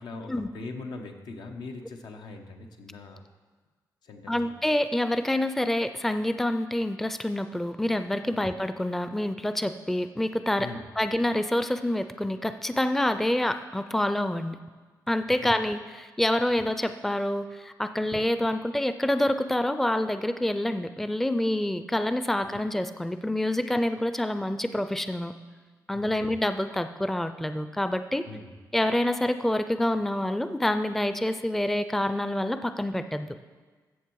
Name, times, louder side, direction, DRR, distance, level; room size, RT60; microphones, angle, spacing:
voice 1, 0.0-3.2 4.0-4.5 8.3-8.4 10.6-10.9 15.4-15.5 25.9-26.3 28.2-28.5, left 3 dB, 90° left, 4 dB, 1.1 m, -41 dB
voice 2, 4.3-10.7 11.0-14.6 15.1-25.3 25.9-28.2 28.7-33.3, left 1 dB, 5° left, 10 dB, 0.4 m, -27 dB
14.0 x 7.3 x 4.7 m, 1.4 s
wide cardioid pair, 130°, 7 cm